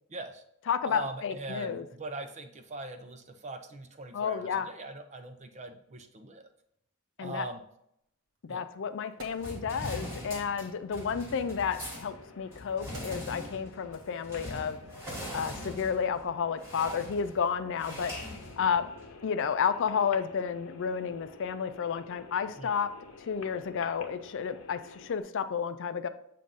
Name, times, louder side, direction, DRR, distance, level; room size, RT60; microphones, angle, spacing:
voice 1, 0.1-0.4 0.9-6.5 7.2-7.6 8.5-8.6 22.6-22.7, right 2 dB, 30° right, 6 dB, 0.6 m, -41 dB
voice 2, 0.7-1.8 4.1-4.7 7.2-7.5 8.4-14.8 15.3-18.1 18.6-18.8 19.2-22.9 23.3-26.1, left 6 dB, 60° left, 10 dB, 0.4 m, -31 dB
Wood, 8.4-8.5 8.9-10.5 11.5-14.8 15.1-15.3, right 2 dB, 65° right, 1.2 m, -54 dB
sound 1, 9.4-19.2, left 1 dB, 10° right, 1.5 m, -42 dB
sound 2, 11.1-25.2, left 4 dB, 85° left, 0.8 m, -51 dB
7.5 x 2.6 x 5.3 m, 0.75 s
head